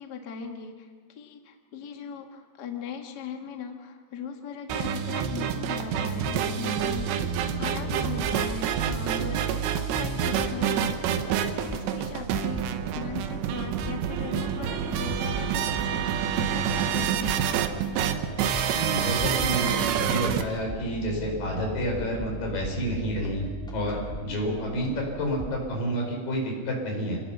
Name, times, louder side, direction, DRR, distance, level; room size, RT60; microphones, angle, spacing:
voice 1, 0.0-17.4, left 6 dB, 75° left, 3 dB, 0.9 m, -39 dB
sound 1, 4.7-20.4, right 8 dB, 80° right, 3.3 m, -28 dB
sound 2, 6.8-25.8, right 2 dB, ahead, 1.2 m, -39 dB
voice 2, 18.7-23.5 23.7-27.2, equal, 55° left, 0 dB, 6.3 m, -29 dB
27.0 x 19.5 x 6.0 m, 1.5 s
omnidirectional pair, 4.9 m